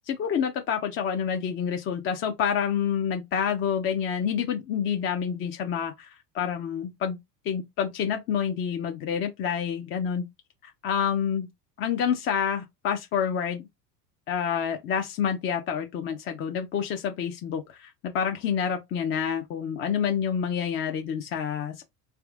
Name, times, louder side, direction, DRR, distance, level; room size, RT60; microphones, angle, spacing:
voice 1, 0.1-7.2 7.4-10.3 10.6-11.5 11.8-13.6 14.3-21.8, left 7 dB, 30° left, 0.4 m, -28 dB
3.5 x 2.5 x 2.3 m
hypercardioid pair, 85°, 49 cm